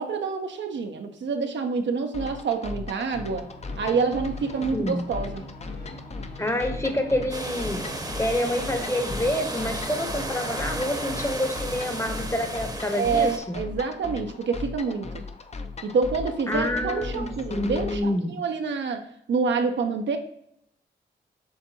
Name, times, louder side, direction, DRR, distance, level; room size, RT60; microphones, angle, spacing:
voice 1, 0.0-3.4 3.8-5.4 12.9-15.1 15.8-20.2, right 5 dB, 70° right, 6 dB, 0.6 m, -27 dB
sound 1, 2.1-18.0, left 3 dB, 35° left, 0.5 m, -38 dB
sound 2, 3.2-12.7, left 1 dB, 55° left, 1.7 m, -43 dB
voice 2, 6.4-7.8 8.2-13.6 16.5-18.4, left 1 dB, 15° left, 5 dB, 0.8 m, -27 dB
sound 3, 7.3-13.4, right 2 dB, 20° right, 0.8 m, -34 dB
7.1 x 2.6 x 2.7 m, 0.72 s
cardioid pair, 55°, 19 cm